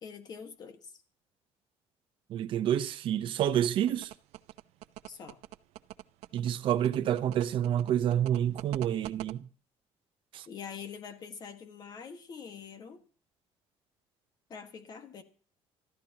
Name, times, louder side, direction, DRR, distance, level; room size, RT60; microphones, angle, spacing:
voice 1, 0.0-0.9 5.1-5.4 10.5-13.0 14.5-15.2, left 6 dB, 40° left, 1.7 m, -44 dB
voice 2, 2.3-4.1 6.3-9.5 10.3-10.5, right 10 dB, 55° right, 0.8 m, -28 dB
sound 1, 3.4-9.3, right 15 dB, 80° right, 0.7 m, -44 dB
25.5 x 13.5 x 2.9 m
cardioid pair, 165°, 11 cm